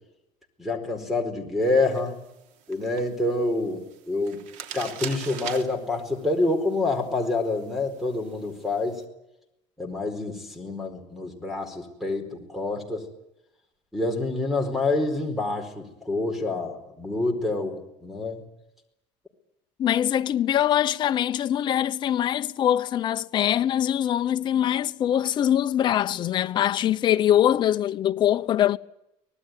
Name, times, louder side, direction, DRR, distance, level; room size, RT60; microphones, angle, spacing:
voice 1, 0.6-2.2 2.7-4.4 4.7-9.0 9.8-13.0 13.9-18.4, left 2 dB, ahead, 4.5 m, -27 dB
sound 1, 1.6-9.0, right 9 dB, 65° right, 3.2 m, -43 dB
voice 2, 19.8-28.8, left 11 dB, 35° left, 1.0 m, -23 dB
25.0 x 19.5 x 9.5 m
cardioid pair, 165°, 14 cm